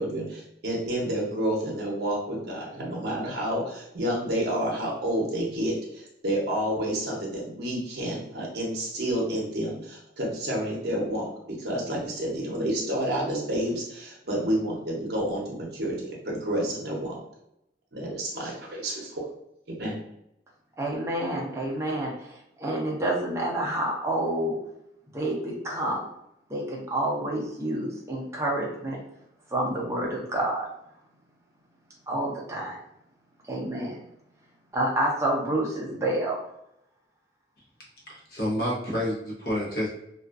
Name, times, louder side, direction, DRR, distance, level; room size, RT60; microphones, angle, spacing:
voice 1, 0.0-11.3 11.6-17.2 17.9-19.2 19.8-19.9, right 1 dB, 65° right, -3 dB, 0.7 m, -29 dB
voice 2, 20.8-24.6 25.1-26.1 26.5-29.0 29.5-30.7 32.1-32.8 33.5-34.0 34.7-36.4, right 1 dB, 15° right, -4 dB, 0.5 m, -28 dB
voice 3, 38.1-39.9, equal, 55° left, -4 dB, 0.8 m, -29 dB
2.4 x 2.4 x 2.4 m, 0.79 s
head